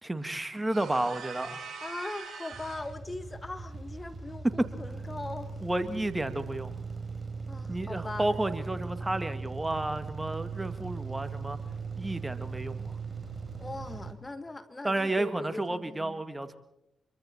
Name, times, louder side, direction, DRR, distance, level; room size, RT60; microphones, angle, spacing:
voice 1, 0.0-1.6 4.6-4.7 5.6-6.7 7.7-11.6 12.0-12.9 14.8-16.6, right 2 dB, 15° right, 11 dB, 1.9 m, -31 dB
sound 1, 0.7-3.0, right 5 dB, 65° right, 7.7 m, -42 dB
voice 2, 1.8-5.5 7.5-8.3 13.6-16.2, left 2 dB, 25° left, 11 dB, 1.4 m, -40 dB
sound 2, 2.5-14.1, right 4 dB, 35° right, 3.6 m, -39 dB
25.5 x 23.5 x 4.3 m, 0.81 s
hypercardioid pair, 40°, 0 cm